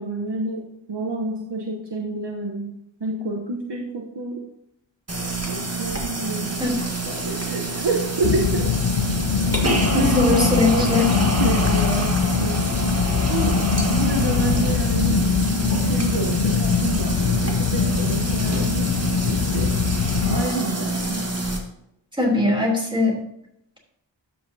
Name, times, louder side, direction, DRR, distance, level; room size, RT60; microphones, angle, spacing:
voice 1, 0.0-2.7 3.0-4.4 5.5-6.8 7.1-8.7 9.9-12.7 13.3-13.6 13.9-15.3 15.6-18.9 19.3-19.7 20.3-21.3, right 2 dB, 65° right, 1 dB, 1.0 m, -29 dB
sound 1, 5.1-21.6, right 2 dB, 35° right, 1.6 m, -26 dB
sound 2, 8.2-20.4, left 7 dB, 80° left, 0.6 m, -23 dB
voice 2, 9.6-11.1 22.2-23.2, left 2 dB, 10° right, -1 dB, 3.1 m, -20 dB
12.5 x 5.9 x 2.8 m, 0.80 s
wide cardioid pair, 45°, 45 cm